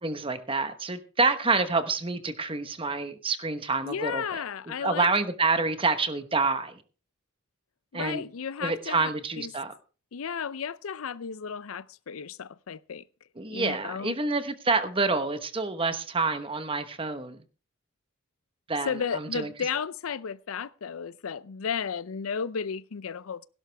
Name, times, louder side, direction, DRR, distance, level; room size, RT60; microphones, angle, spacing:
voice 1, 0.0-4.4 4.8-6.8 7.9-8.2 8.6-9.7 13.4-17.4 18.7-19.5, right 3 dB, 25° right, 1.1 m, -28 dB
voice 2, 3.9-5.1 7.9-9.1 9.4-9.5 10.1-13.0 13.5-14.2 18.8-23.5, left 6 dB, 80° left, 0.5 m, -33 dB
17.0 x 11.5 x 3.4 m
head